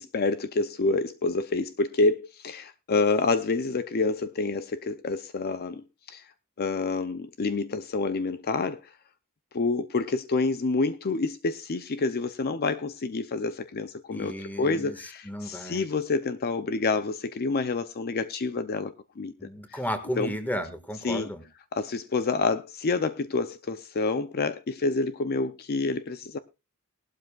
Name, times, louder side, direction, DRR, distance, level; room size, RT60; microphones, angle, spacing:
voice 1, 0.0-6.3 6.6-8.9 9.5-19.3 19.7-19.8 20.2-20.3 21.0-21.3 21.7-26.4, left 3 dB, 45° left, 0.5 m, -28 dB
voice 2, 14.1-15.0 15.2-15.8 19.4-21.4, equal, 10° left, 1.6 m, -33 dB
18.5 x 12.0 x 2.4 m
head